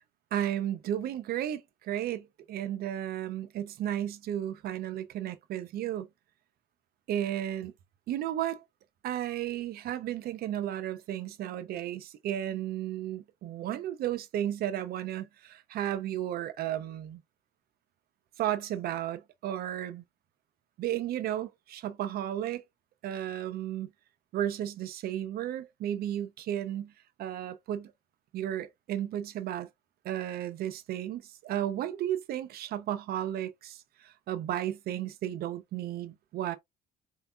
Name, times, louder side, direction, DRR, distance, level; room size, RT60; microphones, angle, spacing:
voice 1, 0.3-6.1 7.1-7.7 8.1-8.6 9.0-17.2 18.4-20.0 20.8-22.6 23.0-23.9 24.3-26.9 27.2-27.9 28.3-29.7 30.0-36.6, right 11 dB, 65° right, 0.6 m, -33 dB
4.3 x 2.8 x 2.2 m
cardioid pair, 110°, 17 cm